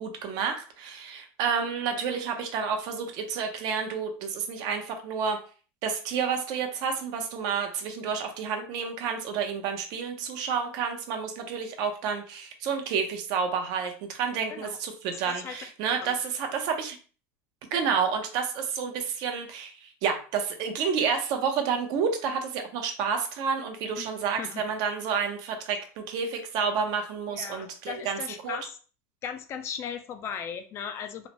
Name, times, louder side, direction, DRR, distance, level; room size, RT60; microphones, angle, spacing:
voice 1, 0.0-5.4 5.8-17.0 17.7-28.6, right 6 dB, 55° right, 5 dB, 0.6 m, -30 dB
voice 2, 15.1-15.6 16.0-16.1 24.0-24.6 27.3-28.8 29.2-31.3, left 7 dB, 35° left, 7 dB, 0.3 m, -37 dB
3.1 x 2.0 x 2.9 m, 0.39 s
supercardioid pair, 135°, 8 cm